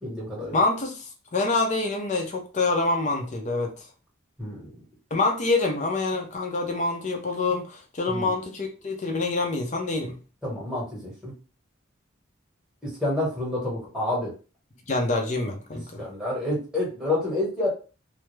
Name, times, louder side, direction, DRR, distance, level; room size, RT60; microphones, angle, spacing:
voice 1, 0.0-0.6 4.4-4.8 8.1-8.3 10.4-11.3 12.8-14.3 16.0-17.7, left 1 dB, 5° right, 0.9 m, -28 dB
voice 2, 0.5-3.9 5.1-10.2 14.9-16.1, left 3 dB, 35° left, 0.5 m, -26 dB
2.2 x 2.0 x 3.0 m
head